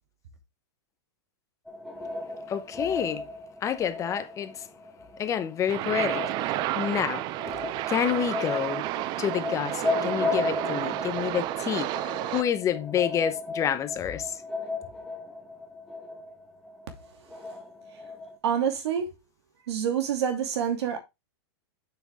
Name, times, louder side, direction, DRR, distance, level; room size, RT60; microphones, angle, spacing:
sound 1, 1.7-18.4, left 2 dB, ahead, 1.8 m, -35 dB
voice 1, 2.5-3.3 3.6-4.7 5.2-7.3 7.9-8.9 9.2-14.4, left 9 dB, 20° left, 0.8 m, -29 dB
sound 2, 5.7-12.4, right 16 dB, 30° right, 0.4 m, -31 dB
voice 2, 18.4-19.1 19.7-21.0, right 8 dB, 75° right, 2.7 m, -27 dB
7.8 x 6.3 x 3.6 m
supercardioid pair, 140°, 14 cm